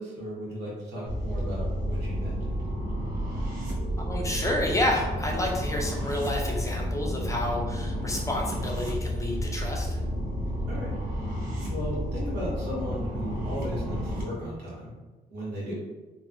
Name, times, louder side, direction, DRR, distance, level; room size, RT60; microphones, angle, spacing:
voice 1, 0.0-2.3 10.7-10.9 11.7-14.9 15.3-15.7, equal, 80° right, -7 dB, 1.2 m, -35 dB
sound 1, 1.1-14.2, equal, 55° right, 0.9 m, -31 dB
voice 2, 4.0-10.0, left 1 dB, 20° left, -1 dB, 0.4 m, -30 dB
3.0 x 2.1 x 2.5 m, 1.2 s
cardioid pair, 110°, 17 cm